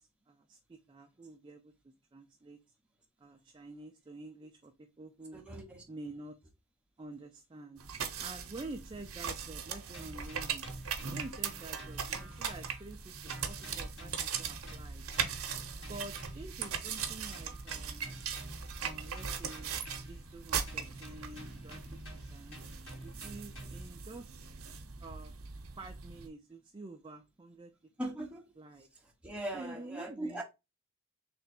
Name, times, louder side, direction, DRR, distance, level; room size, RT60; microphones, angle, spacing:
voice 1, 0.0-2.6 3.2-5.4 5.9-6.3 7.0-7.8 8.2-10.7 11.1-15.0 15.8-18.1 18.8-19.7 20.1-22.6 23.0-24.3 25.0-25.3 25.8-27.7 28.6-28.9 29.5-30.4, right 2 dB, 20° right, 0.3 m, -48 dB
voice 2, 5.3-5.8 28.0-28.5 28.9-30.4, right 1 dB, 5° right, 0.8 m, -40 dB
sound 1, 7.8-26.3, right 7 dB, 70° right, 0.8 m, -40 dB
sound 2, 9.9-13.0 13.3-16.6 17.0-20.3 20.7-24.0, right 1 dB, 60° left, 2.3 m, -49 dB
3.4 x 3.0 x 4.2 m
head